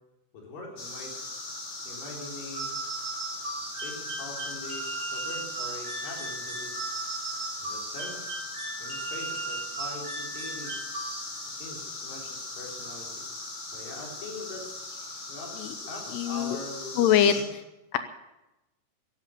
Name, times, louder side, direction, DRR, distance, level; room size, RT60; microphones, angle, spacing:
voice 1, 0.3-1.1 1.8-2.7 3.7-6.9 7.6-8.4 8.8-10.7 11.5-13.2 13.7-17.0 17.3-17.5, left 2 dB, 50° left, -1 dB, 5.3 m, -43 dB
sound 1, 0.8-17.4, left 2 dB, 35° left, 3.3 m, -39 dB
sound 2, 2.5-11.6, right 3 dB, 45° right, 5.2 m, -37 dB
voice 2, 16.1-16.6 17.0-17.3 17.9-18.0, left 9 dB, 75° left, 10 dB, 2.8 m, -22 dB
15.5 x 11.5 x 8.3 m, 0.96 s
omnidirectional pair, 5.1 m